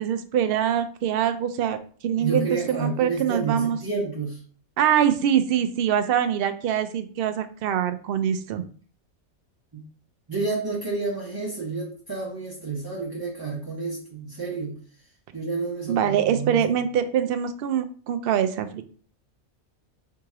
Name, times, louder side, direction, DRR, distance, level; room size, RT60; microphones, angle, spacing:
voice 1, 0.0-1.8 2.0-3.8 4.8-8.6 15.9-18.8, right 9 dB, 75° right, 8 dB, 0.5 m, -24 dB
voice 2, 2.2-4.4 9.7-9.9 10.3-16.9, right 4 dB, 20° right, -4 dB, 0.8 m, -30 dB
3.6 x 2.9 x 4.8 m, 0.43 s
omnidirectional pair, 1.5 m